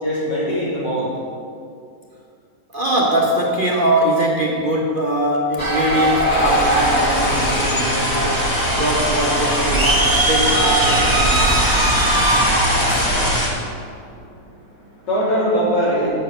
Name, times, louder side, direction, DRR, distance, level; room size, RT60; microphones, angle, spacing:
voice 1, 0.0-1.1 11.6-16.1, equal, 85° left, -8 dB, 3.8 m, -24 dB
voice 2, 2.7-11.7, right 1 dB, 35° right, -2 dB, 1.1 m, -21 dB
sound 1, 5.6-13.4, right 2 dB, 15° right, 0.7 m, -20 dB
sound 2, 6.3-11.8, left 5 dB, 65° left, 0.8 m, -31 dB
sound 3, 6.4-13.5, left 1 dB, 40° left, 2.0 m, -23 dB
9.0 x 6.7 x 6.7 m, 2.4 s
omnidirectional pair, 1.9 m